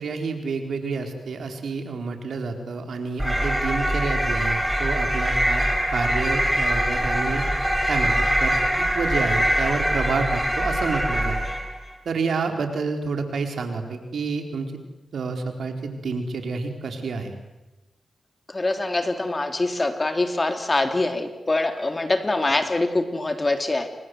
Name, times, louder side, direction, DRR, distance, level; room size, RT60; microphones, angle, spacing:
voice 1, 0.0-5.6 5.9-7.4 7.9-11.4 12.0-14.7 15.1-17.4, right 4 dB, 75° right, 5 dB, 4.3 m, -29 dB
sound 1, 3.2-11.8, equal, 5° right, 6.4 m, -23 dB
voice 2, 18.5-23.9, left 2 dB, 30° left, 7 dB, 3.5 m, -24 dB
29.0 x 25.5 x 8.0 m, 1.1 s
cardioid pair, 55°, 0 cm